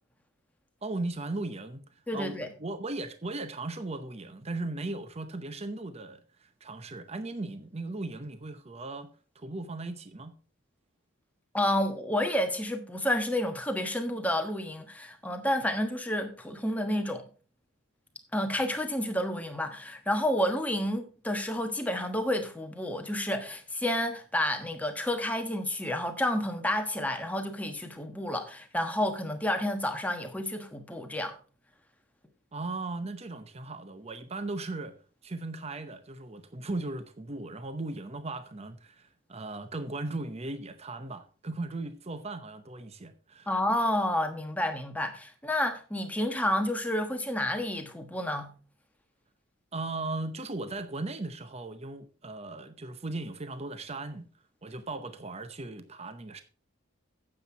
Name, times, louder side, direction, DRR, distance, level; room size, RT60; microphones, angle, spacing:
voice 1, 0.8-1.8 2.1-9.1 9.3-10.3 32.5-35.0 35.2-43.5 49.7-54.3 54.6-56.4, right 2 dB, 30° right, 0.7 m, -37 dB
voice 2, 2.1-2.5 11.5-17.2 18.3-31.4 43.5-48.6, left 1 dB, 5° left, 1.2 m, -30 dB
9.7 x 7.7 x 4.4 m
head